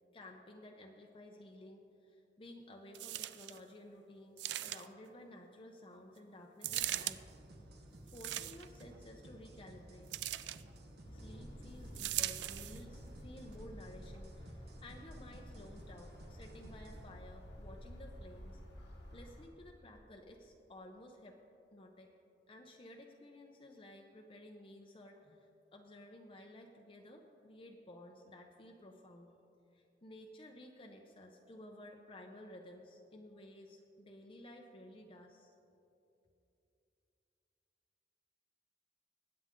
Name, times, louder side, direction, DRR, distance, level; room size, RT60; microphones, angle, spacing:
voice 1, 0.1-7.2 8.0-10.1 11.1-18.6 19.1-21.4 21.7-22.1 22.5-29.4 29.7-35.5, left 1 dB, 30° left, 1 dB, 0.7 m, -54 dB
sound 1, 2.9-3.6 4.4-5.1 6.6-7.2 8.1-8.8 10.1-10.6 11.9-12.8 13.5-13.6, right 14 dB, 80° right, 0.4 m, -39 dB
sound 2, 6.6-17.1, right 1 dB, 65° right, 1.4 m, -55 dB
sound 3, 11.0-19.4, equal, 90° left, 2.0 m, -52 dB
21.5 x 8.7 x 3.7 m, 2.8 s
head